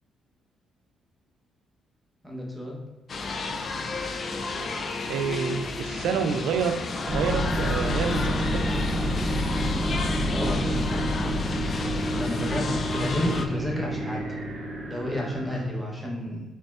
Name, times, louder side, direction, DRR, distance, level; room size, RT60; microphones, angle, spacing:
voice 1, 2.2-2.8 10.3-11.0 12.1-14.3 14.8-16.5, left 1 dB, ahead, -3 dB, 1.0 m, -31 dB
sound 1, 3.1-13.5, left 3 dB, 45° left, 0.3 m, -32 dB
voice 2, 5.1-6.8 7.1-8.6, right 6 dB, 80° right, 8 dB, 0.3 m, -28 dB
sound 2, 7.1-15.7, equal, 40° right, 0.7 m, -28 dB
4.3 x 3.4 x 2.5 m, 1.1 s
cardioid pair, 90°, 0 cm